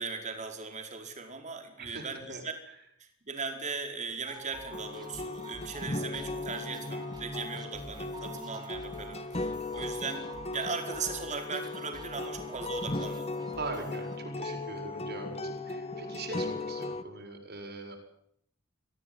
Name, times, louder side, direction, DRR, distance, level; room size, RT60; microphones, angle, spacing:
voice 1, 0.0-2.5 3.0-13.3, right 4 dB, 35° right, 5 dB, 5.1 m, -38 dB
voice 2, 1.8-2.4 9.4-9.6 13.5-18.0, right 2 dB, 55° right, 3 dB, 7.4 m, -41 dB
sound 1, 4.3-14.2, right 2 dB, 20° right, 6.1 m, -48 dB
sound 2, 4.7-17.0, left 2 dB, 30° left, 1.7 m, -37 dB
24.5 x 17.0 x 9.7 m, 0.70 s
head